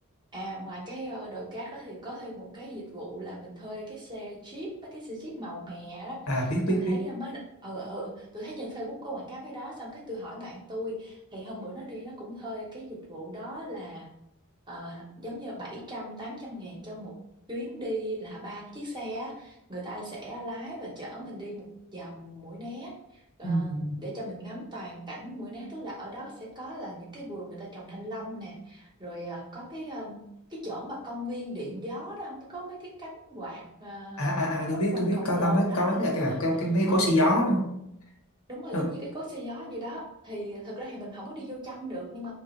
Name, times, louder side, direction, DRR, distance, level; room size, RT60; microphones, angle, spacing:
voice 1, 0.3-14.1 14.7-17.1 17.5-21.7 21.9-30.2 30.5-34.2 34.9-36.4 36.9-37.1 38.5-42.3, equal, 20° right, -3 dB, 0.9 m, -38 dB
voice 2, 6.3-7.0 23.4-24.0 34.2-37.7 38.7-38.9, equal, 75° left, -1 dB, 1.1 m, -25 dB
3.3 x 2.4 x 4.3 m, 0.80 s
head